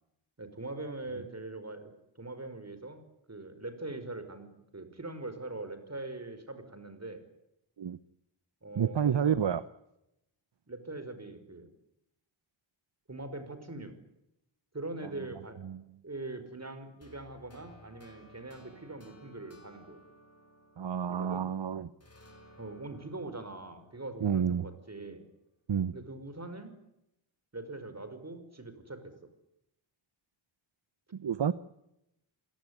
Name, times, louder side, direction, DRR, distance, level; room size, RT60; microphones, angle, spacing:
voice 1, 0.4-1.9 2.2-7.2 8.6-9.4 10.7-11.7 13.1-14.0 14.7-15.6 16.0-20.0 21.1-21.4 22.6-25.3 25.9-26.7 27.5-29.0, right 2 dB, 30° right, 10 dB, 5.4 m, -42 dB
voice 2, 8.7-9.6 15.0-15.1 15.6-15.8 20.8-21.9 24.2-24.7 25.7-25.9 31.2-31.5, right 8 dB, 60° right, 15 dB, 1.0 m, -29 dB
sound 1, 17.0-21.5 22.0-25.1, equal, 30° left, 5.8 m, -58 dB
28.0 x 18.0 x 9.8 m, 0.86 s
wide cardioid pair, 90°, 49 cm